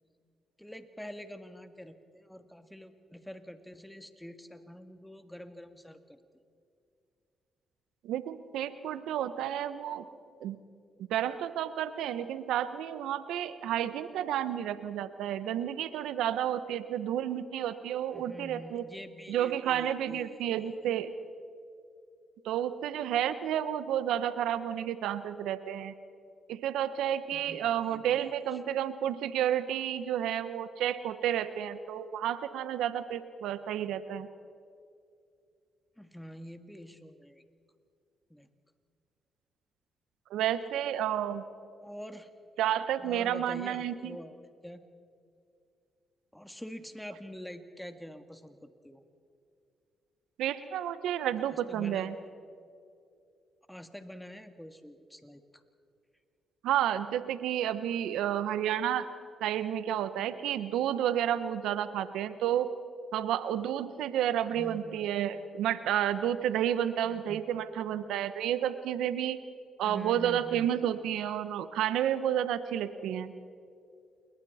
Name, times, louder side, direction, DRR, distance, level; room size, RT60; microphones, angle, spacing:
voice 1, 0.6-6.2 18.1-20.8 27.3-28.6 36.0-37.4 38.3-38.5 41.8-42.3 43.0-44.9 46.3-49.0 51.5-52.1 53.7-55.4 64.5-65.1 67.0-67.6 69.8-70.7, equal, 5° left, 8 dB, 2.0 m, -46 dB
voice 2, 8.0-10.1 10.4-10.6 11.1-18.8 19.3-21.1 22.4-25.9 26.5-34.3 40.3-41.4 42.6-44.2 50.4-52.1 56.6-59.1 59.4-62.7 63.1-69.4 69.8-73.3, right 10 dB, 80° right, 13 dB, 1.1 m, -31 dB
28.5 x 21.5 x 4.3 m, 2.5 s
supercardioid pair, 55°, 0 cm